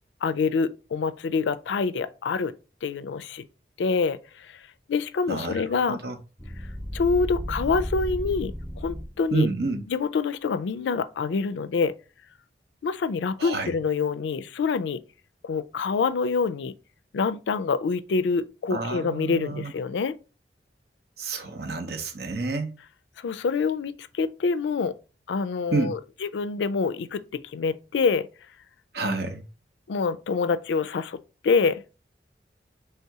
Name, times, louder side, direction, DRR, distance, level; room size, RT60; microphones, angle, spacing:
voice 1, 0.2-2.5 2.8-3.4 3.8-4.5 4.9-6.0 6.9-9.5 9.9-11.9 12.8-15.0 15.4-16.7 17.1-20.2 23.2-24.9 25.3-28.3 29.9-31.2 31.4-31.8, left 5 dB, 90° left, 0.4 m, -26 dB
voice 2, 5.3-6.2 9.3-9.8 13.4-13.7 18.7-19.7 21.2-22.7 25.7-26.0 28.9-29.4, right 3 dB, 65° right, 0.7 m, -29 dB
sound 1, 6.4-9.4, equal, 5° right, 0.4 m, -33 dB
3.3 x 2.8 x 4.6 m
head